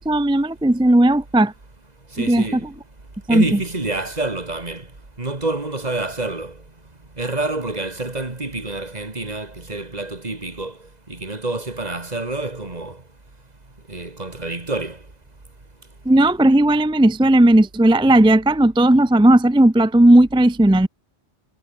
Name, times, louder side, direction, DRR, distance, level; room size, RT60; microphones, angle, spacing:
voice 1, 0.1-1.5 2.2-2.4 3.3-3.6 16.1-20.9, right 1 dB, 10° right, 0.3 m, -15 dB
voice 2, 2.1-2.6 3.3-4.9 5.2-6.5 7.2-10.7 11.1-13.0 13.9-15.0, right 2 dB, 35° right, 2.6 m, -27 dB
omnidirectional pair, 1.1 m